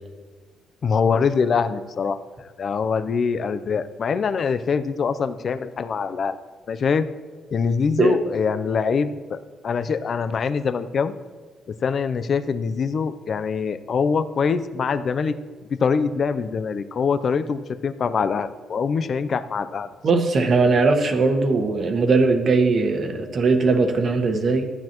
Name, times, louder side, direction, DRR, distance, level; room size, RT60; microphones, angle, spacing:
voice 1, 0.8-2.2 2.6-6.4 6.7-7.1 7.5-9.4 9.6-11.1 11.7-15.4 15.8-19.9, left 5 dB, 50° left, 11 dB, 0.5 m, -23 dB
voice 2, 20.0-24.6, right 3 dB, 50° right, 5 dB, 1.4 m, -19 dB
14.5 x 9.4 x 3.0 m, 1.4 s
cardioid pair, 90°, 0 cm